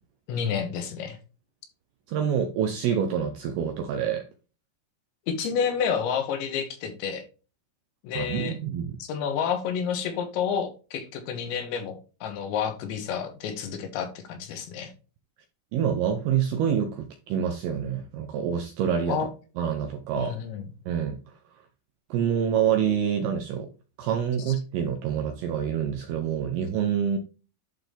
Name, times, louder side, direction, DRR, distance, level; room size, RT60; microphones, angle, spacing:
voice 1, 0.3-1.2 5.3-7.2 8.0-8.6 9.0-14.9 19.1-19.3 20.2-20.7 24.4-24.5, left 7 dB, 75° left, 3.5 m, -30 dB
voice 2, 2.1-4.3 8.2-9.0 15.7-19.2 19.6-20.3 20.9-21.2 22.1-23.7 24.0-27.2, right 8 dB, 80° right, 2.3 m, -27 dB
11.0 x 3.9 x 3.4 m
omnidirectional pair, 5.3 m